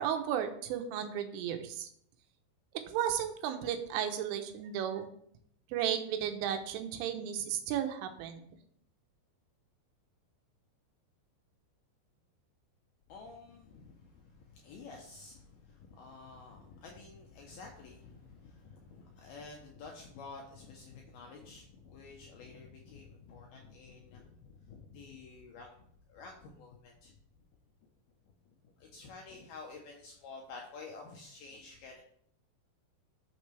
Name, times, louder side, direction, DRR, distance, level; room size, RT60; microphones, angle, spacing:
voice 1, 0.0-1.9 2.9-5.1 5.7-8.4, right 9 dB, 80° right, 6 dB, 3.4 m, -34 dB
voice 2, 13.1-27.1 28.8-32.0, left 4 dB, 90° left, 0 dB, 2.2 m, -50 dB
12.0 x 7.1 x 3.4 m, 0.68 s
omnidirectional pair, 5.7 m